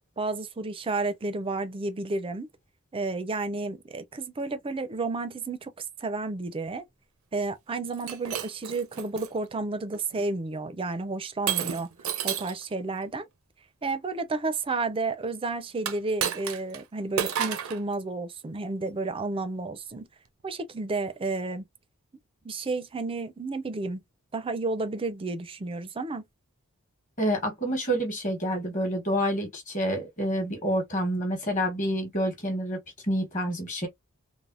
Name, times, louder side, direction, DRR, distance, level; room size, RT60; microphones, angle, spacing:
voice 1, 0.2-2.5 2.9-6.8 7.3-11.9 12.2-13.3 13.8-20.1 20.4-21.7 22.4-24.0 24.3-26.2, right 3 dB, 25° right, 0.4 m, -31 dB
Shatter, 7.9-9.3 9.9-10.3 11.5-12.6 15.8-16.8 17.2-17.8, right 9 dB, 75° right, 0.6 m, -31 dB
voice 2, 27.2-33.9, equal, 35° left, 1.1 m, -28 dB
3.3 x 2.1 x 2.5 m
head